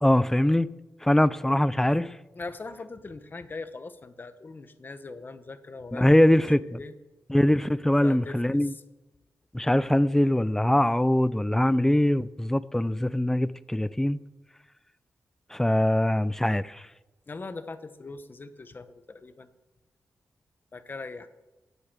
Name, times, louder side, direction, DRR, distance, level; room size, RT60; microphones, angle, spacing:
voice 1, 0.0-0.7 1.0-2.2 5.9-6.8 7.3-8.7 9.5-14.2 15.5-16.8, left 1 dB, 5° left, 0.5 m, -22 dB
voice 2, 2.4-6.3 6.7-6.9 8.0-8.8 17.3-19.5 20.7-21.3, left 3 dB, 35° left, 1.0 m, -41 dB
20.0 x 8.3 x 7.4 m
wide cardioid pair, 135°, 6 cm